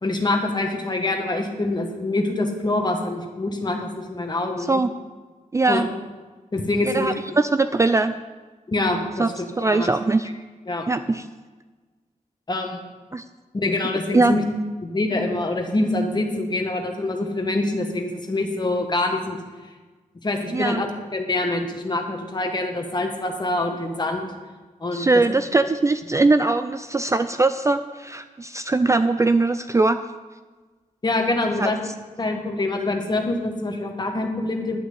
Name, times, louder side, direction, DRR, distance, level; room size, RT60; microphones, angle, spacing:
voice 1, 0.0-4.8 5.7-5.9 6.5-7.1 8.7-9.4 9.7-9.9 10.7-10.9 12.5-12.8 13.5-14.4 14.8-19.4 20.2-20.9 21.1-24.3 24.8-25.1 31.0-31.8 32.2-34.8, left 2 dB, 30° left, 3 dB, 1.5 m, -25 dB
voice 2, 5.5-5.9 6.8-8.2 9.2-9.3 9.6-10.3 10.9-11.2 13.1-13.2 14.1-14.4 20.5-20.8 24.9-30.0 31.4-31.7, right 3 dB, 20° right, 10 dB, 0.3 m, -21 dB
11.5 x 6.0 x 8.5 m, 1.3 s
wide cardioid pair, 145°, 14 cm